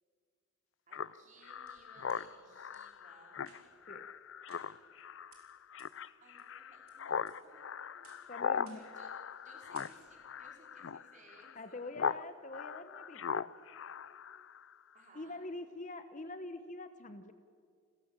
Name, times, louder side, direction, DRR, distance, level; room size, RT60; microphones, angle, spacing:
Speech synthesizer, 0.9-12.2 12.5-14.7, left 6 dB, 60° left, 0.5 m, -40 dB
voice 1, 0.9-3.4 6.2-8.1 8.6-11.8 14.9-15.4, right 2 dB, 35° right, -1 dB, 4.9 m, -62 dB
sound 1, 1.2-2.2 2.7-2.8 3.4-3.9 4.5-5.0 5.3-5.4 5.8-5.9 6.4-6.9 7.3-7.6 8.0-8.3 8.7-9.0 9.3-9.5 9.7-10.3, right 6 dB, 90° right, 4.7 m, -62 dB
voice 2, 8.3-8.8 11.6-13.5 15.1-17.3, left 2 dB, 35° left, 10 dB, 0.9 m, -45 dB
29.0 x 15.0 x 7.4 m, 2.1 s
head